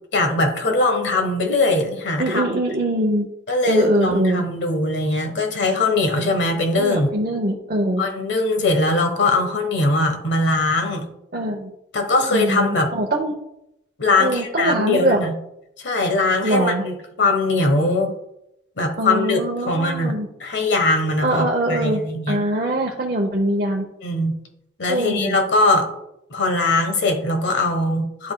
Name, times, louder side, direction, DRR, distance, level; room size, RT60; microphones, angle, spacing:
voice 1, 0.1-2.4 3.5-7.1 8.0-11.1 11.9-12.9 14.0-15.3 15.8-18.1 18.8-20.1 20.4-22.4 24.0-24.3 24.8-25.9 26.3-28.3, left 2 dB, 70° left, 5 dB, 1.2 m, -21 dB
voice 2, 2.2-3.3 3.7-4.4 6.7-8.0 11.3-11.7 12.3-13.3 14.2-15.2 16.4-16.8 19.0-20.3 21.2-22.0 22.3-23.8 24.9-25.4, right 1 dB, 50° right, 0 dB, 0.7 m, -22 dB
10.5 x 5.2 x 2.2 m, 0.81 s
head